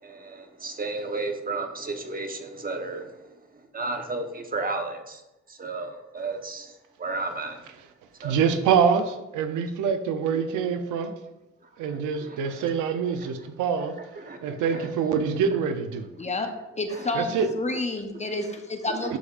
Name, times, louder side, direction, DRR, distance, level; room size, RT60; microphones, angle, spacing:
voice 1, 0.0-5.2 5.5-7.6 8.2-8.4 11.6-12.7 13.2-13.3 14.0-14.4 14.7-14.9 16.9-17.1 18.5-19.1, right 3 dB, 30° right, 5 dB, 1.1 m, -34 dB
voice 2, 8.2-11.1 11.8-14.0 14.4-16.1 17.1-17.5 19.1-19.2, right 6 dB, 85° right, 8 dB, 0.7 m, -25 dB
voice 3, 16.2-16.5 16.8-19.2, left 2 dB, 25° left, 5 dB, 0.9 m, -29 dB
11.5 x 5.0 x 2.5 m, 0.97 s
cardioid pair, 90°, 30 cm